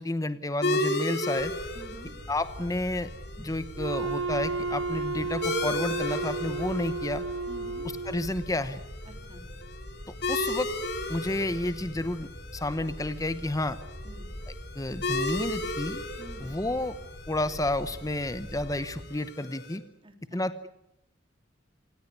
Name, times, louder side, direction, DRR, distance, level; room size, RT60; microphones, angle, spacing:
voice 1, 0.0-1.5 2.3-3.1 3.4-7.2 8.1-8.8 10.3-10.7 11.1-13.8 14.5-16.0 16.4-17.0 17.3-19.8 20.3-20.7, left 1 dB, 20° left, 12 dB, 0.9 m, -31 dB
sound 1, 0.6-19.8, left 2 dB, 55° left, 3.6 m, -36 dB
sound 2, 1.4-19.1, equal, 35° left, 5.8 m, -44 dB
voice 2, 1.7-2.1 7.5-7.8 9.0-9.4 14.0-14.3 16.2-16.5 20.0-20.4, right 1 dB, 25° right, 5 dB, 3.9 m, -48 dB
Wind instrument woodwind instrument, 3.8-8.5, right 3 dB, 85° right, 1.3 m, -33 dB
27.0 x 18.0 x 9.6 m, 0.84 s
head